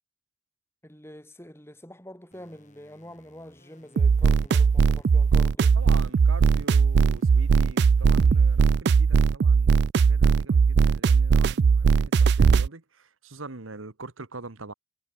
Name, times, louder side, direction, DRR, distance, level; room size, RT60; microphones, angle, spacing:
voice 1, 0.8-5.8 11.8-11.9, equal, 10° left, 7.4 m, -46 dB
sound 1, 2.3-5.3 5.7-8.7, left 1 dB, 35° left, 4.2 m, -59 dB
sound 2, 4.0-12.7, right 5 dB, 55° right, 0.3 m, -19 dB
voice 2, 5.7-14.7, right 3 dB, 90° right, 1.6 m, -43 dB
head